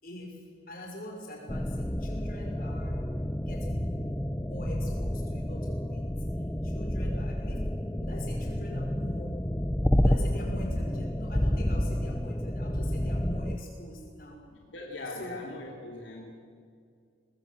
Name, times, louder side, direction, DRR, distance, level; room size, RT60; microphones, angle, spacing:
voice 1, 0.0-3.0 3.4-4.1 4.4-6.2 6.6-9.4 10.0-14.4 15.1-15.4, left 1 dB, 50° left, 0 dB, 5.4 m, -43 dB
sound 1, 1.5-13.6, equal, 10° left, 0.7 m, -30 dB
voice 2, 14.5-16.4, left 2 dB, 80° left, 0 dB, 3.0 m, -40 dB
22.5 x 20.5 x 7.6 m, 2.2 s
head